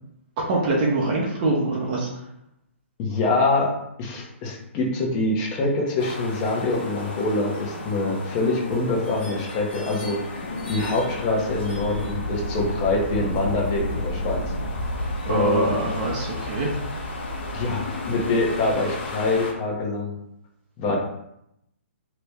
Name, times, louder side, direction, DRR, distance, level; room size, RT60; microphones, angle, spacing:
voice 1, 0.4-2.1 15.2-16.7, right 2 dB, 35° right, -3 dB, 0.8 m, -24 dB
voice 2, 3.0-3.7 4.0-14.4 15.3-15.8 17.5-20.1 20.8-21.0, left 2 dB, 30° left, -2 dB, 1.0 m, -25 dB
sound 1, 6.0-19.5, left 1 dB, 55° left, 1.1 m, -32 dB
2.9 x 2.6 x 3.4 m, 0.80 s
hypercardioid pair, 135°, 7 cm